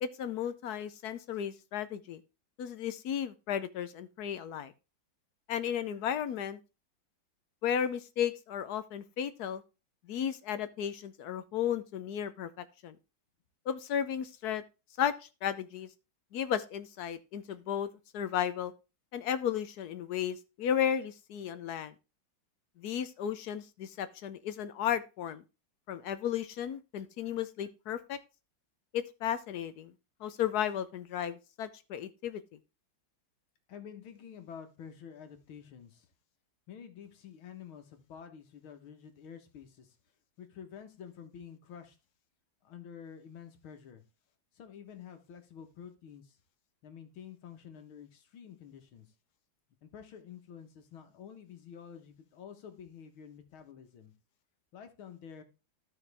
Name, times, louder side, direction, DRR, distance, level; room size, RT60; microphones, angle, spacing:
voice 1, 0.0-2.2 2.6-4.7 5.5-6.6 7.6-9.6 10.1-13.0 13.7-14.6 15.0-15.9 16.3-18.7 19.1-21.9 22.8-25.4 25.9-28.2 28.9-29.9 30.2-32.4, left 9 dB, 65° left, 1.0 m, -34 dB
voice 2, 33.7-36.1 36.7-40.0 40.4-42.0 42.6-44.0 44.5-46.4 46.8-49.1 49.8-54.1 54.7-55.4, left 8 dB, 85° left, 2.2 m, -49 dB
13.0 x 5.8 x 3.4 m
omnidirectional pair, 2.2 m